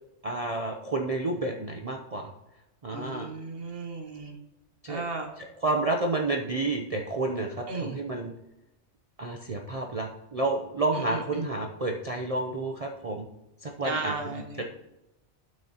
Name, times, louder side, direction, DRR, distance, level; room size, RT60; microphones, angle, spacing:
voice 1, 0.2-2.3 2.8-3.3 4.8-5.0 5.4-8.3 9.2-13.3 13.6-14.6, right 2 dB, 35° right, 1 dB, 0.7 m, -30 dB
voice 2, 2.9-4.4 4.9-5.3 7.7-8.0 10.9-11.4 13.8-14.6, right 3 dB, 55° right, 3 dB, 1.3 m, -35 dB
12.0 x 6.3 x 2.9 m, 0.93 s
omnidirectional pair, 1.2 m